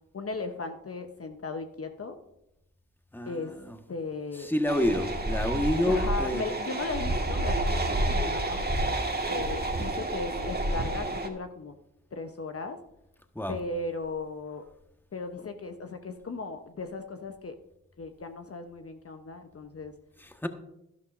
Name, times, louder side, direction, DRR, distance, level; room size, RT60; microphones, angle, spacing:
voice 1, 0.1-2.2 3.3-3.6 3.9-4.5 5.8-8.6 9.3-11.7 12.1-12.8 13.5-14.6 15.1-17.5 18.0-19.9, left 3 dB, 45° left, 6 dB, 0.9 m, -36 dB
voice 2, 3.1-3.8 4.4-6.4 13.3-13.6 20.2-20.5, left 1 dB, 5° left, 6 dB, 1.3 m, -28 dB
sound 1, 4.7-11.3, right 1 dB, 30° right, 1.7 m, -29 dB
11.5 x 11.5 x 2.6 m, 0.84 s
cardioid pair, 45°, 33 cm